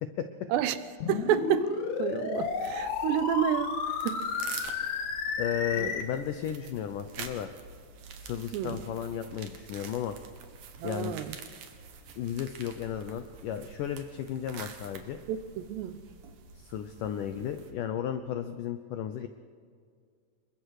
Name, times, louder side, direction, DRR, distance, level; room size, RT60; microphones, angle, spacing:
sound 1, 1.0-6.0, left 5 dB, 55° left, 2.6 m, -32 dB
voice 1, 1.1-1.7 2.0-3.7 4.0-4.2 4.9-5.0 5.8-5.9 8.5-8.8 10.8-11.4 15.3-15.9, right 10 dB, 85° right, 3.2 m, -29 dB
sound 2, 2.4-17.7, right 6 dB, 55° right, 2.7 m, -47 dB
voice 2, 5.4-7.5 8.2-10.2 10.8-11.2 12.2-15.2 16.6-19.3, left 9 dB, 80° left, 1.9 m, -34 dB
27.5 x 23.0 x 4.9 m
omnidirectional pair, 4.8 m